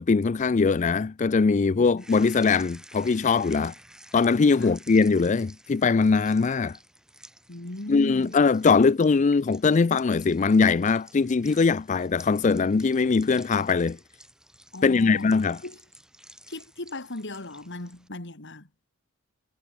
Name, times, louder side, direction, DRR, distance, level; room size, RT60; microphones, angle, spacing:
voice 1, 0.0-3.7 4.1-6.8 7.9-14.0 14.8-15.6, left 4 dB, 35° left, 0.4 m, -21 dB
sound 1, 2.0-18.1, right 1 dB, 5° right, 7.3 m, -52 dB
voice 2, 7.5-8.4 14.7-15.3 15.6-15.8 16.5-18.7, left 1 dB, 55° left, 2.5 m, -37 dB
head